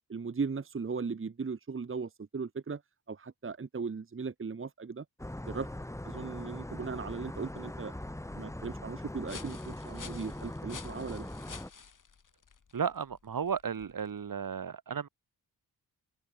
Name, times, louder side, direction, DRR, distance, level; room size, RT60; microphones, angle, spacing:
voice 1, 0.1-2.8 3.1-5.0 5.5-5.7 6.0-7.9 8.3-11.3, right 5 dB, 30° right, 1.5 m, -37 dB
sound 1, 5.2-11.7, left 1 dB, 5° left, 2.5 m, -41 dB
sound 2, 7.0-14.3, left 6 dB, 50° left, 5.8 m, -52 dB
voice 2, 12.7-15.1, right 7 dB, 55° right, 2.6 m, -34 dB
wide cardioid pair, 155°, 39 cm